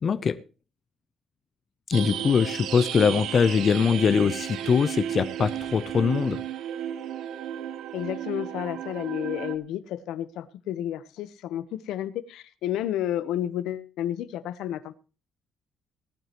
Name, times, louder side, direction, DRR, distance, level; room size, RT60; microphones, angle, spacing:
voice 1, 0.0-0.4 1.9-6.4, left 6 dB, 30° left, 0.6 m, -22 dB
sound 1, 1.9-9.6, right 10 dB, 70° right, 1.1 m, -33 dB
voice 2, 7.9-14.9, left 11 dB, 85° left, 1.0 m, -31 dB
19.0 x 11.5 x 3.0 m
cardioid pair, 180°, 0 cm